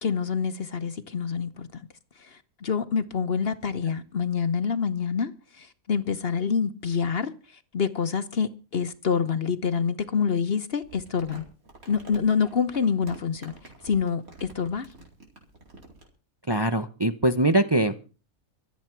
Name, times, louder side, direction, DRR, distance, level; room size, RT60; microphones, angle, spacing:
voice 1, 0.0-1.9 2.2-11.4 11.9-14.9, left 6 dB, 50° left, 1.0 m, -27 dB
Crumpling crinkling, 10.8-16.1, right 2 dB, 85° right, 4.6 m, -48 dB
voice 2, 16.5-18.0, right 1 dB, 25° right, 0.7 m, -22 dB
25.0 x 8.4 x 4.5 m
omnidirectional pair, 1.5 m